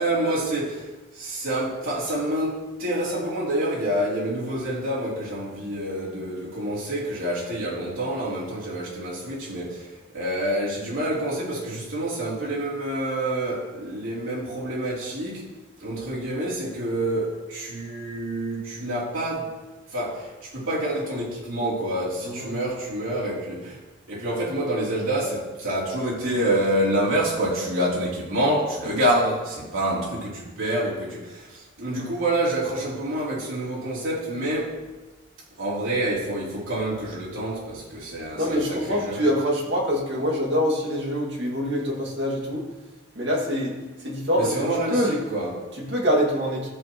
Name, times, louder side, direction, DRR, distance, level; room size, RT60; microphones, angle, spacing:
voice 1, 0.0-15.4 15.8-19.5 19.9-23.8 24.1-34.8 35.6-39.2 44.3-45.6, right 1 dB, 80° right, -7 dB, 3.3 m, -27 dB
voice 2, 22.2-22.5 38.3-42.6 43.1-45.2 45.8-46.7, equal, 55° right, -3 dB, 2.2 m, -25 dB
14.0 x 6.2 x 3.1 m, 1.2 s
head